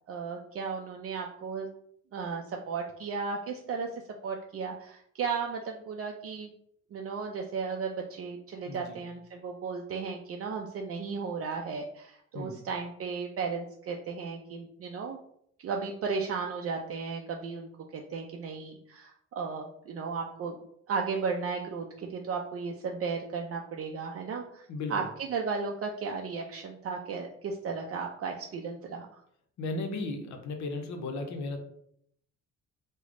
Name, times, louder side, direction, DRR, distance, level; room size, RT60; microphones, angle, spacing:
voice 1, 0.1-1.7 2.1-3.9 4.2-6.5 6.9-15.2 15.6-20.6 20.9-24.6 24.9-25.0 25.3-29.1, right 5 dB, 50° right, 1 dB, 0.5 m, -35 dB
voice 2, 8.7-9.0 12.3-12.6 24.7-25.1 29.6-31.6, left 2 dB, 70° left, 5 dB, 0.7 m, -35 dB
3.3 x 2.1 x 3.6 m, 0.69 s
cardioid pair, 90°, 30 cm